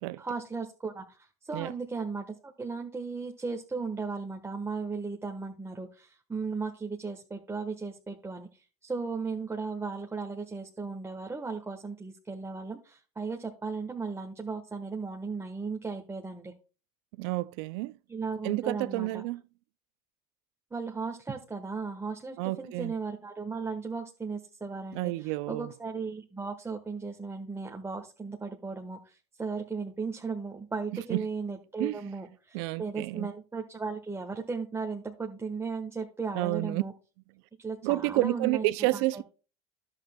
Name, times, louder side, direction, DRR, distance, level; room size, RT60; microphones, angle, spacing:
voice 1, 0.2-16.5 18.1-19.2 20.7-36.9 37.6-38.7 38.9-39.2, right 4 dB, 20° right, 1.3 m, -36 dB
voice 2, 17.2-17.9 18.4-19.4 22.4-22.9 24.9-25.7 31.1-31.3 31.8-32.0 32.5-33.3 36.3-36.8 37.8-39.2, right 20 dB, 75° right, 0.4 m, -30 dB
11.5 x 7.8 x 2.2 m
hypercardioid pair, 80°, 14 cm